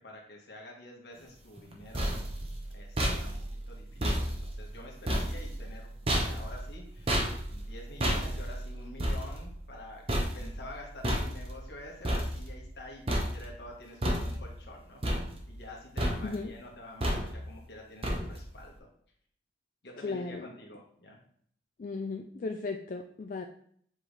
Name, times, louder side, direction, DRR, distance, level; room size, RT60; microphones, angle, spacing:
voice 1, 0.0-2.1 2.7-3.3 3.7-5.9 6.1-15.0 15.5-18.9 19.8-21.2, left 1 dB, 75° left, 0 dB, 1.6 m, -48 dB
sound 1, 1.6-12.8 13.1-13.7 14.0-14.7 15.0-15.7 16.0-16.5 17.0-17.6 18.0-18.6, equal, 35° right, 1.0 m, -32 dB
voice 2, 20.0-20.5 21.8-23.4, left 3 dB, 50° left, 4 dB, 0.4 m, -36 dB
7.4 x 3.8 x 3.3 m, 0.63 s
head